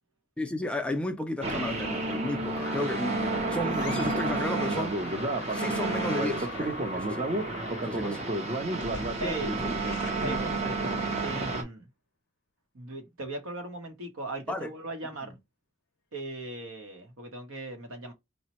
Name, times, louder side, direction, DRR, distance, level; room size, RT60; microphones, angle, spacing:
voice 1, 0.4-5.0 5.5-7.3 7.8-8.3 8.9-9.1 9.5-9.8 10.2-10.4 14.5-14.7, left 1 dB, 5° left, 0.3 m, -33 dB
sound 1, 1.4-11.6, right 2 dB, 30° right, 0.6 m, -30 dB
sound 2, 2.6-3.1 3.7-4.3 4.6-11.1, left 4 dB, 60° left, 0.6 m, -44 dB
voice 2, 9.2-9.5 10.2-10.8 11.2-11.9 12.7-15.4 16.1-18.1, right 2 dB, 70° right, 0.9 m, -38 dB
4.1 x 2.1 x 2.8 m
head